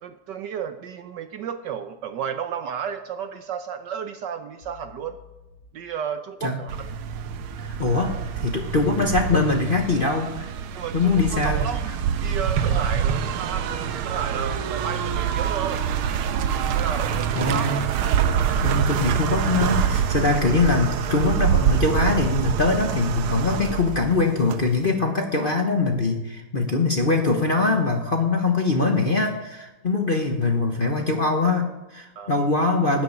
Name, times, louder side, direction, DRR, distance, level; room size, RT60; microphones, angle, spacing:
voice 1, 0.0-5.2 5.7-6.9 10.7-15.8 16.7-17.7 32.2-32.3, right 8 dB, 70° right, 9 dB, 1.1 m, -32 dB
sound 1, 4.6-5.6 6.7-7.6 9.3-9.6 11.0-11.6 12.3-13.6 14.7-15.6 17.3-17.6 19.0-19.6 20.3-20.7, left 7 dB, 65° left, 3.0 m, -48 dB
sound 2, 6.7-24.9, right 8 dB, 85° right, 1.7 m, -25 dB
voice 2, 7.6-10.5 10.9-11.7 17.3-17.9 18.6-33.0, left 3 dB, 35° left, 2 dB, 0.9 m, -22 dB
13.0 x 6.8 x 9.5 m, 1.0 s
omnidirectional pair, 2.3 m